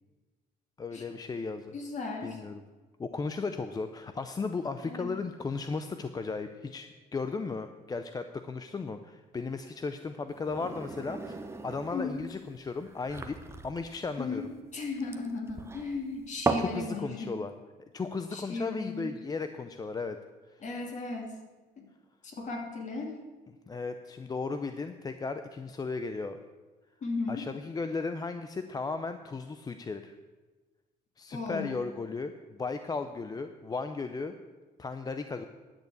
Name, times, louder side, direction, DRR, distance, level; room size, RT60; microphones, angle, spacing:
voice 1, 0.8-1.8 2.2-2.6 3.0-14.5 16.6-17.5 17.9-20.2 20.5-20.6 23.7-26.4 27.3-30.1 31.2-34.4 34.8-35.5, left 4 dB, 25° left, 9 dB, 0.5 m, -35 dB
voice 2, 1.7-2.4 4.8-5.2 11.9-12.2 14.2-14.4 14.7-17.3 18.3-19.2 20.6-21.3 21.8-21.9 22.2-23.1 27.0-27.5 31.3-31.7, left 3 dB, 45° left, 1 dB, 2.8 m, -36 dB
sound 1, 10.3-16.8, right 3 dB, 15° right, 1.0 m, -37 dB
10.5 x 6.7 x 8.4 m, 1.3 s
cardioid pair, 110°, 17 cm